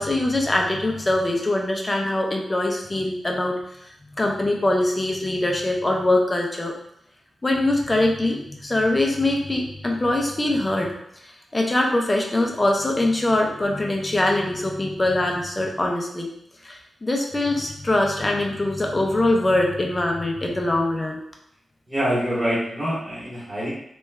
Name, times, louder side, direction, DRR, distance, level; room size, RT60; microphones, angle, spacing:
voice 1, 0.0-3.6 4.1-6.7 7.4-10.9 11.2-16.3 16.6-21.2, left 1 dB, 20° left, 1 dB, 0.5 m, -23 dB
voice 2, 21.9-23.7, equal, 10° right, -10 dB, 1.2 m, -25 dB
3.1 x 2.3 x 3.2 m, 0.73 s
wide cardioid pair, 130°, 0 cm